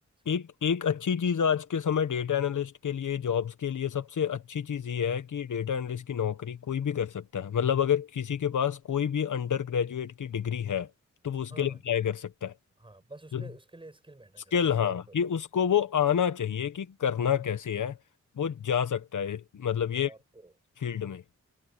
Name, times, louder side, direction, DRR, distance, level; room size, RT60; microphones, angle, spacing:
voice 1, 0.2-10.9 11.2-12.5 13.3-13.4 14.5-18.0 18.4-20.1 20.8-21.2, left 8 dB, 80° left, 1.4 m, -28 dB
voice 2, 11.5-11.8 12.8-15.2 19.9-20.5, right 2 dB, 15° right, 6.7 m, -49 dB
wide cardioid pair, 165°, 30 cm